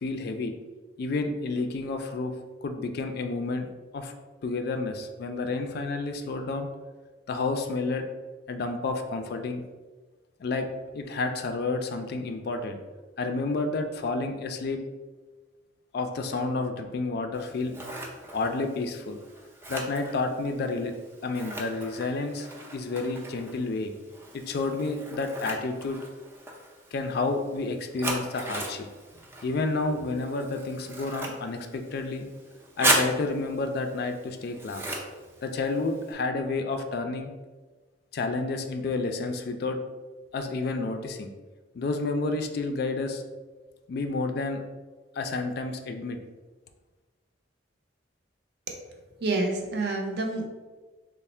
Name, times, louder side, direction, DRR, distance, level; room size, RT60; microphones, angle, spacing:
voice 1, 0.0-0.5 1.0-2.3 2.6-3.7 3.9-4.1 4.4-6.7 7.3-8.0 8.5-9.6 10.4-10.7 10.9-12.8 13.2-14.8 15.9-17.8 18.3-19.2 19.7-20.9 21.2-22.5 22.7-23.9 24.3-26.0 26.9-28.9 29.4-32.3 32.8-34.8 35.4-37.3 38.1-39.8 40.3-41.3 41.7-43.2 43.9-44.6 45.2-46.2, left 3 dB, 55° left, 6 dB, 0.3 m, -30 dB
Scissors, 17.3-36.1, right 1 dB, 10° right, 0.4 m, -36 dB
voice 2, 49.2-50.5, right 2 dB, 55° right, 2 dB, 0.6 m, -28 dB
3.3 x 2.0 x 4.2 m, 1.3 s
head